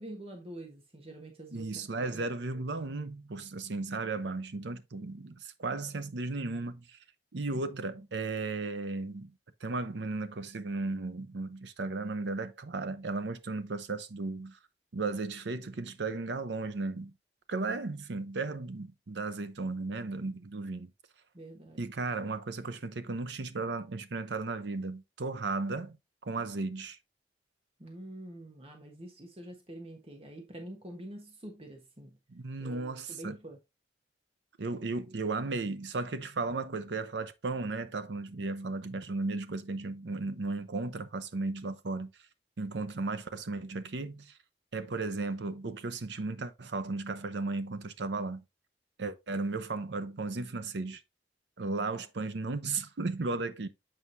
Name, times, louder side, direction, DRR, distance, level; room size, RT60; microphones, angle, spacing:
voice 1, 0.0-2.3 21.3-21.9 27.8-32.2 32.6-33.6 51.9-52.0, right 1 dB, 35° right, 1.2 m, -46 dB
voice 2, 1.5-7.0 7.3-9.3 9.6-14.6 14.9-17.1 17.5-20.9 21.8-26.0 26.2-27.0 32.3-33.4 34.6-42.1 42.6-44.3 44.7-48.4 49.0-51.0 51.6-53.7, right 3 dB, 75° right, 0.7 m, -35 dB
7.7 x 4.7 x 2.6 m
head